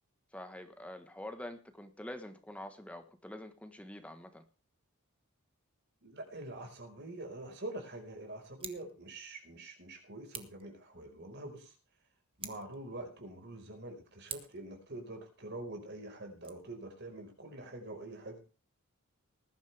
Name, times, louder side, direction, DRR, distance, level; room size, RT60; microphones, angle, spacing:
voice 1, 0.3-4.4, left 1 dB, 5° left, 8 dB, 1.3 m, -46 dB
voice 2, 6.0-11.7 12.4-18.4, right 2 dB, 50° right, 4 dB, 4.8 m, -45 dB
Scissors, 8.5-8.9 10.3-10.7 12.3-12.8 14.3-14.7 16.3-16.5, right 7 dB, 25° right, 1.3 m, -45 dB
20.0 x 11.5 x 3.4 m, 0.35 s
head